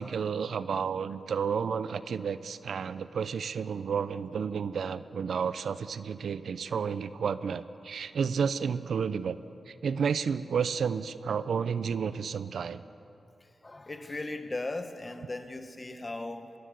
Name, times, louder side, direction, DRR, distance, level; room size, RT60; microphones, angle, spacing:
voice 1, 0.0-9.4 9.8-12.8, right 6 dB, 80° right, 14 dB, 0.7 m, -31 dB
voice 2, 13.6-16.5, left 2 dB, 30° left, 7 dB, 1.8 m, -37 dB
22.0 x 18.0 x 8.2 m, 2.8 s
cardioid pair, 70°, 0 cm